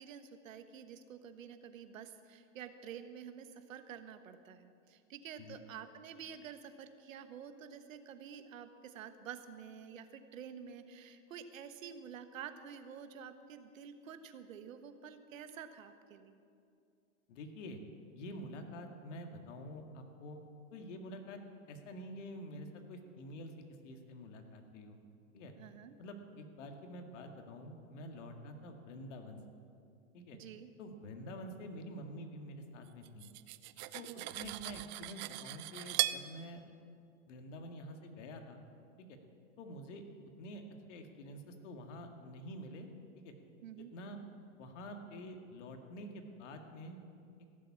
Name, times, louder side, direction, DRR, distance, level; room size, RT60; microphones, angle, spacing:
voice 1, 0.0-16.4 25.6-25.9 30.3-30.7 34.0-34.3 43.6-43.9, right 8 dB, 75° right, 10 dB, 1.3 m, -49 dB
voice 2, 17.3-17.8 18.2-20.4 20.7-21.4 21.7-23.5 23.8-25.0 25.3-25.5 26.0-29.4 30.1-30.4 30.8-33.3 33.9-36.6 37.3-38.6 39.0-39.2 39.6-40.0 40.4-40.6 40.9-42.9 43.2-43.3 43.8-44.2 44.6-47.0, equal, 65° left, 5 dB, 2.1 m, -47 dB
Cutlery silverware, 33.0-36.2, right 17 dB, 35° right, 0.4 m, -38 dB
16.0 x 7.7 x 8.6 m, 2.5 s
hypercardioid pair, 125°, 40 cm